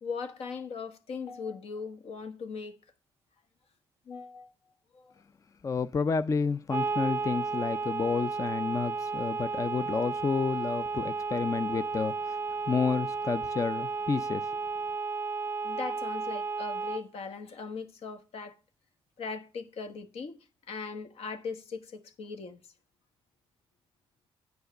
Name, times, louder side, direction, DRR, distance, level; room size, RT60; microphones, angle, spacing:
voice 1, 0.0-2.8 4.1-4.5 4.9-5.1 15.6-18.6 19.2-20.4 20.7-22.6, left 5 dB, 70° left, 1.3 m, -39 dB
voice 2, 5.6-12.4 12.7-14.5, left 5 dB, 30° left, 0.4 m, -30 dB
sound 1, 6.7-17.0, right 4 dB, 25° right, 0.6 m, -33 dB
9.1 x 4.7 x 6.4 m
cardioid pair, 70°, 10 cm